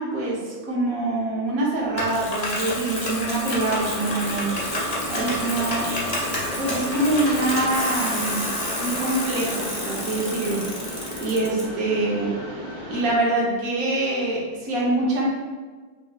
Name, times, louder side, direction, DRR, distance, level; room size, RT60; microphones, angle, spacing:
voice 1, 0.0-4.5 5.1-6.0 6.6-8.5 8.8-10.7 11.2-12.3 12.9-15.3, right 2 dB, 60° right, -4 dB, 1.2 m, -25 dB
Bicycle, 2.0-11.6, left 1 dB, 60° left, 0.4 m, -29 dB
Wind instrument woodwind instrument, 3.0-9.3, right 4 dB, 90° right, 1.6 m, -39 dB
Mechanisms, 3.7-13.2, equal, 35° right, 0.8 m, -35 dB
5.4 x 2.6 x 2.3 m, 1.5 s
omnidirectional pair, 1.9 m